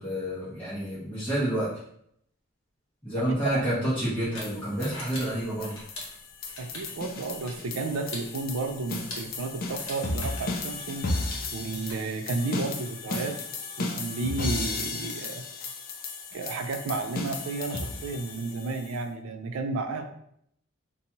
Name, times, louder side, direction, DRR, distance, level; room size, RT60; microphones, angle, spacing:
voice 1, 0.0-1.7 3.0-5.8, right 1 dB, 10° left, -12 dB, 0.7 m, -29 dB
sound 1, 3.2-11.9, left 2 dB, 65° left, 0.8 m, -44 dB
voice 2, 3.2-3.7 6.6-11.1 11.5-13.4 13.8-15.5 16.3-20.0, right 3 dB, 80° right, 6 dB, 0.4 m, -32 dB
sound 2, 4.4-19.0, left 3 dB, 40° left, 0.3 m, -35 dB
2.7 x 2.3 x 2.8 m, 0.71 s
head